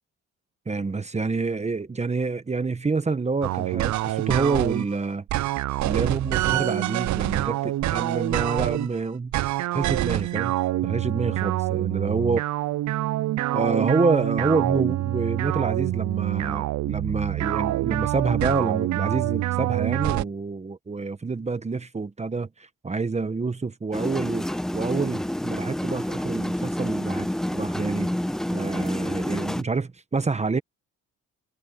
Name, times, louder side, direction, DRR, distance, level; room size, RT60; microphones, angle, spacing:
voice 1, 0.7-5.2 5.8-9.3 9.7-10.6 10.8-12.4 13.5-28.1 28.5-30.6, right 4 dB, 20° right, 1.1 m, -27 dB
sound 1, 3.4-4.9 5.3-8.9 9.3-20.2, right 15 dB, 70° right, 0.6 m, -26 dB
sound 2, 23.9-29.6, left 1 dB, ahead, 0.3 m, -28 dB
cardioid pair, 90°, 30 cm